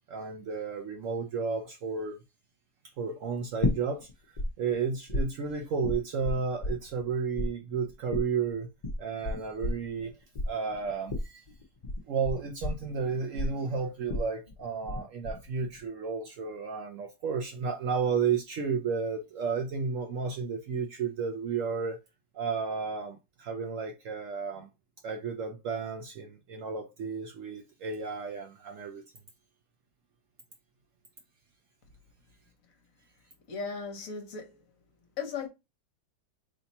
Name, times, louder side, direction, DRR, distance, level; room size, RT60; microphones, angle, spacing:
voice 1, 0.1-2.2 3.0-4.1 4.6-8.7 9.0-10.1 10.5-11.4 12.1-22.0 22.3-24.7 25.0-29.0, right 5 dB, 65° right, 0.8 m, -32 dB
sound 1, 3.6-4.5 4.7-7.1 7.4-15.0 15.2-15.8, left 2 dB, 40° left, 0.5 m, -32 dB
voice 2, 33.5-34.6 35.2-35.5, left 5 dB, 60° left, 1.3 m, -36 dB
3.3 x 2.8 x 4.1 m
omnidirectional pair, 1.8 m